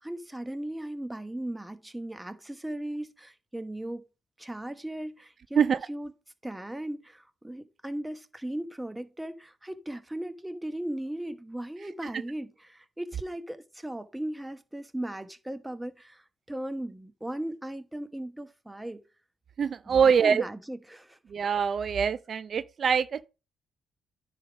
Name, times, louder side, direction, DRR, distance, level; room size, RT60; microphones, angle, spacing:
voice 1, 0.0-4.0 4.4-5.6 5.9-6.1 6.4-19.0 19.9-21.2, right 1 dB, 10° right, 1.0 m, -37 dB
voice 2, 5.6-5.9 12.0-12.1 19.6-20.4 21.3-23.3, right 6 dB, 50° right, 0.4 m, -24 dB
9.8 x 3.4 x 5.1 m
cardioid pair, 90°, 0 cm